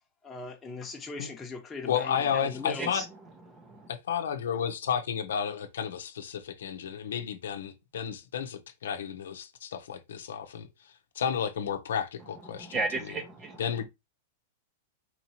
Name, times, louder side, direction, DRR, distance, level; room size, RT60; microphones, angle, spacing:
voice 1, 0.2-2.9, left 4 dB, 15° left, 0.9 m, -40 dB
voice 2, 1.9-3.0 3.9-10.7 11.1-13.1 13.6-13.8, left 8 dB, 90° left, 0.7 m, -32 dB
voice 3, 3.5-3.9 12.5-13.6, right 3 dB, 20° right, 0.7 m, -34 dB
4.3 x 2.9 x 2.8 m
supercardioid pair, 150°, 0 cm